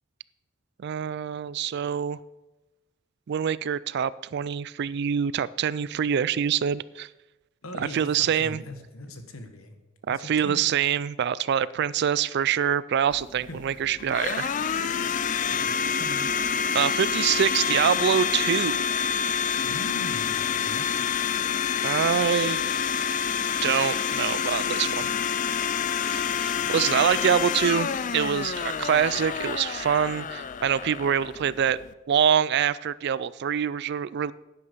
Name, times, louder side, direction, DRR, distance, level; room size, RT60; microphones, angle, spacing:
voice 1, 0.8-2.2 3.3-7.1 7.8-8.6 10.1-14.5 16.7-18.8 21.8-22.6 23.6-25.1 26.0-31.8 32.1-34.3, right 8 dB, 50° right, 19 dB, 0.3 m, -25 dB
voice 2, 7.6-9.8 10.1-10.7 13.5-13.6 15.5-16.3 19.6-21.1 26.5-26.8, left 1 dB, 80° left, 7 dB, 1.6 m, -41 dB
Domestic sounds home sounds, 13.1-31.9, left 7 dB, 35° left, 0.4 m, -28 dB
10.5 x 9.8 x 5.5 m, 1.1 s
head